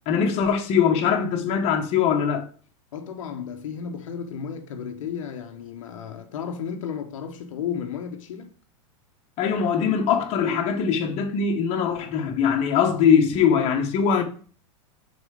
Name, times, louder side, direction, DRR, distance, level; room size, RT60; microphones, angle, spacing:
voice 1, 0.1-2.4 9.4-14.2, left 7 dB, 40° left, 1.2 m, -21 dB
voice 2, 2.9-8.5, left 7 dB, 85° left, 0.8 m, -33 dB
5.2 x 4.1 x 4.9 m
supercardioid pair, 135°, 16 cm